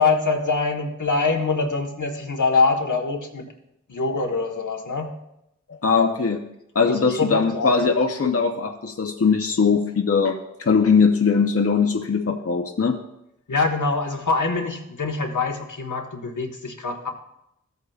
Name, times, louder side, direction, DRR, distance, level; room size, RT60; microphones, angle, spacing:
voice 1, 0.0-3.5 3.9-5.1 5.9-6.1 6.9-7.7 13.5-17.1, left 4 dB, 85° left, 2 dB, 1.3 m, -24 dB
voice 2, 5.7-6.4 6.7-13.0, left 5 dB, 50° left, 4 dB, 0.7 m, -20 dB
15.0 x 8.3 x 2.4 m, 0.82 s
wide cardioid pair, 50°, 30 cm